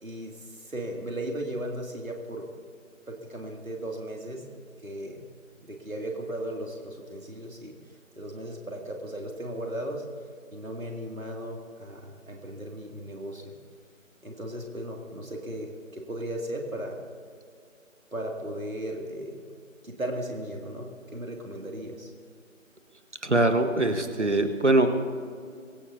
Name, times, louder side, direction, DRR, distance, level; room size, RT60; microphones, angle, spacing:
voice 1, 0.0-2.4 3.1-4.4 4.8-5.2 5.6-7.7 8.2-10.0 10.5-13.5 14.2-17.0 18.1-19.4 19.8-22.1, right 1 dB, 75° right, 0 dB, 2.7 m, -36 dB
voice 2, 23.2-24.9, right 2 dB, 60° right, 7 dB, 1.5 m, -22 dB
25.5 x 15.5 x 2.8 m, 2.2 s
figure-of-eight pair, 170°, 41 cm